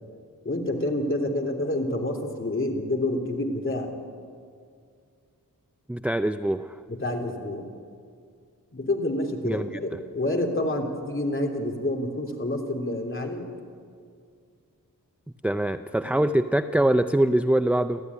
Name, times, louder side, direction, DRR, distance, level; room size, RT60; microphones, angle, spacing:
voice 1, 0.4-3.9 6.9-7.7 8.7-13.5 16.0-16.2, left 1 dB, 35° left, 2 dB, 3.3 m, -28 dB
voice 2, 5.9-6.8 9.4-9.7 15.4-18.0, right 1 dB, 5° right, 9 dB, 0.5 m, -23 dB
29.5 x 12.5 x 9.8 m, 2.2 s
wide cardioid pair, 110°, 36 cm